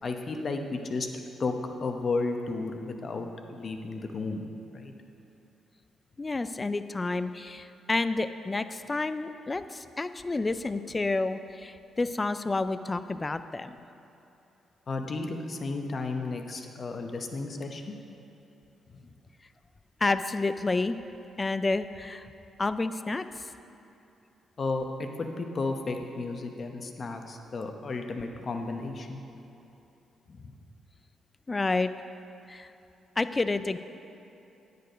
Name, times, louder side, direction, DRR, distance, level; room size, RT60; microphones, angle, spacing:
voice 1, 0.0-1.1 1.4-1.5 1.8-4.4 4.7-4.9 14.9-17.8 18.9-19.0 24.6-29.2 30.3-30.4, left 3 dB, 45° left, 5 dB, 0.8 m, -33 dB
voice 2, 6.2-13.8 20.0-21.0 21.4-22.3 22.6-23.2 31.5-31.9 32.5-32.7 33.2-33.8, left 3 dB, 25° left, 11 dB, 0.4 m, -29 dB
9.4 x 6.8 x 5.1 m, 2.9 s
cardioid pair, 70°, 0 cm